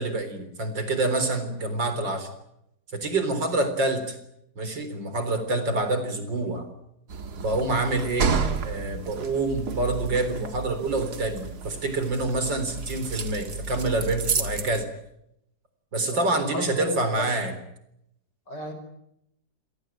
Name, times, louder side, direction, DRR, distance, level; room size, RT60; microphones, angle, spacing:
voice 1, 0.0-2.3 2.9-4.2 4.6-6.7 7.4-8.4 8.6-14.9 15.9-17.5, right 2 dB, 85° right, 9 dB, 4.5 m, -27 dB
sound 1, 7.1-14.8, right 6 dB, 60° right, 2.2 m, -31 dB
voice 2, 15.9-17.3 18.5-18.7, left 2 dB, 70° left, 6 dB, 6.3 m, -34 dB
28.0 x 18.0 x 8.9 m, 0.81 s
omnidirectional pair, 1.9 m